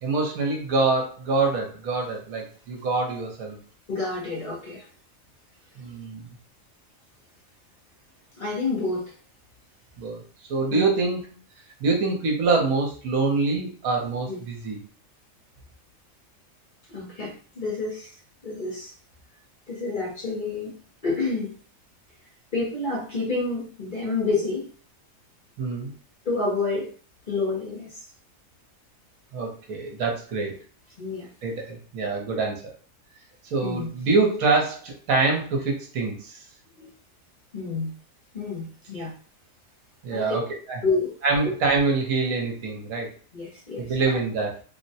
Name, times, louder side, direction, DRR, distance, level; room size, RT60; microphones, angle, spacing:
voice 1, 0.0-3.6 5.8-6.3 10.0-10.2 10.5-11.2 11.8-14.8 25.6-25.9 29.3-30.5 31.4-32.6 33.5-36.4 40.0-40.4 40.7-40.8 41.2-43.1 43.8-44.5, right 3 dB, 70° right, 1 dB, 1.2 m, -25 dB
voice 2, 3.9-4.9 8.4-9.1 10.7-10.8 14.3-14.4 16.9-18.9 19.7-20.7 21.0-21.6 22.5-24.7 26.2-26.9 27.3-28.1 31.0-31.3 33.6-33.9 36.8-36.9 37.5-37.9 38.3-39.1 40.1-40.3 40.8-41.1 43.3-44.2, left 3 dB, 45° left, -3 dB, 0.7 m, -29 dB
3.4 x 2.1 x 2.7 m, 0.42 s
omnidirectional pair, 1.6 m